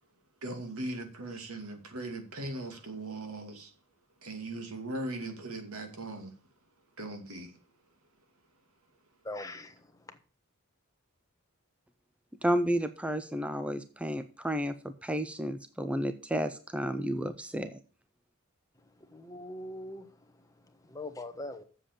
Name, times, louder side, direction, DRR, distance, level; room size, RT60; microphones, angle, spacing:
voice 1, 0.4-3.7 4.2-6.3 7.0-7.5, right 2 dB, 85° right, 2.4 m, -39 dB
voice 2, 9.2-9.8 10.1-10.2 19.0-20.1 20.8-21.6, left 1 dB, 15° left, 1.3 m, -41 dB
voice 3, 12.4-14.7 15.0-17.8, equal, 5° right, 0.6 m, -31 dB
7.6 x 7.5 x 8.4 m
head